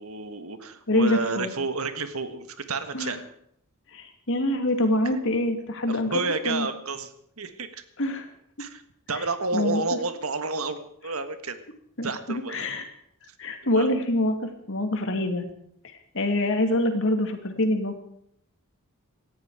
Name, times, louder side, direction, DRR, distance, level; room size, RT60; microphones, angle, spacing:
voice 1, 0.0-3.2 5.9-7.1 7.4-7.8 8.6-8.8 9.1-11.6 12.0-12.6 13.7-13.9, right 3 dB, 85° right, 9 dB, 1.6 m, -30 dB
voice 2, 0.9-1.5 2.9-3.2 3.9-6.1 6.4-6.7 8.0-8.3 9.5-9.8 12.0-12.8 13.4-15.4 16.1-18.0, left 1 dB, 65° left, 6 dB, 2.7 m, -25 dB
18.5 x 14.5 x 5.0 m, 0.70 s
head